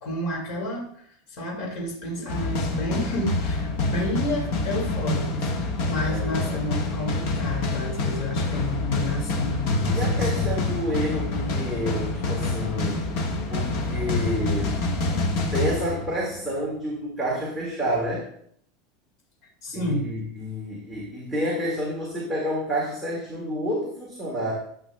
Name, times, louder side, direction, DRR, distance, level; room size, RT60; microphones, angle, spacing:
voice 1, 0.0-10.6 19.6-20.1, left 1 dB, 45° left, -1 dB, 2.2 m, -31 dB
sound 1, 2.3-16.5, left 2 dB, 60° left, 1.4 m, -27 dB
voice 2, 6.1-6.6 9.9-13.0 13.5-14.8 15.5-18.3 19.7-24.5, equal, ahead, -7 dB, 1.7 m, -29 dB
12.5 x 7.9 x 2.2 m, 0.66 s
supercardioid pair, 170°, 0 cm